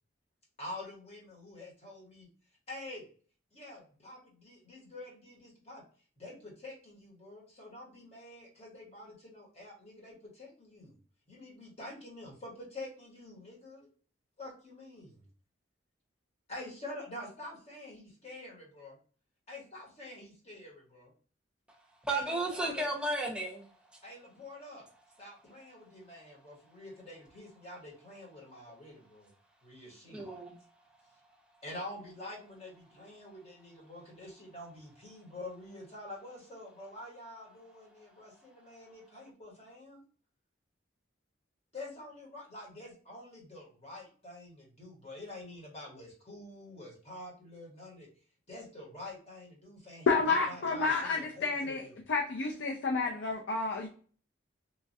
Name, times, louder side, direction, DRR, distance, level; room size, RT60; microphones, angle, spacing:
voice 1, 0.6-2.3 2.7-3.0 3.5-5.8 6.2-11.0 11.3-13.9 14.4-15.3 16.5-19.0 19.5-21.1 22.1-22.9 24.0-24.9 25.2-29.3 29.6-30.3 31.6-40.0 41.7-48.1 48.5-51.9, left 1 dB, 35° left, 1.1 m, -47 dB
voice 2, 22.0-23.7 30.1-30.6, right 2 dB, 5° right, 0.5 m, -33 dB
voice 3, 50.1-53.9, left 4 dB, 70° left, 0.4 m, -30 dB
3.1 x 2.3 x 2.5 m
head